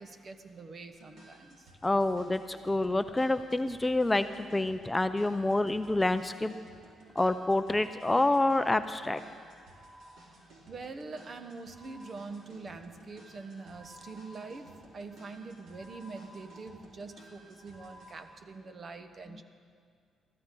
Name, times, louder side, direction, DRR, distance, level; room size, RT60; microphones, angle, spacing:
voice 1, 0.0-1.7 10.7-19.4, right 3 dB, 45° right, 8 dB, 1.2 m, -44 dB
sound 1, 0.8-18.1, right 1 dB, 75° right, 4.2 m, -55 dB
voice 2, 1.8-6.5 7.2-9.2, left 2 dB, 15° left, 10 dB, 0.5 m, -27 dB
23.5 x 14.0 x 3.8 m, 2.2 s
cardioid pair, 90°, 0 cm